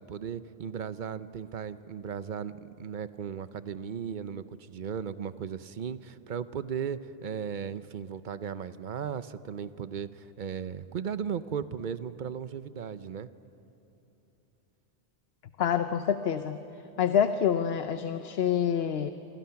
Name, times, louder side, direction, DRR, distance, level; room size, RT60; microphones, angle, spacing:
voice 1, 0.0-13.3, right 7 dB, 55° right, 13 dB, 0.8 m, -36 dB
voice 2, 15.6-16.6 17.0-19.1, left 8 dB, 75° left, 9 dB, 1.0 m, -27 dB
26.0 x 26.0 x 5.8 m, 2.8 s
omnidirectional pair, 1.0 m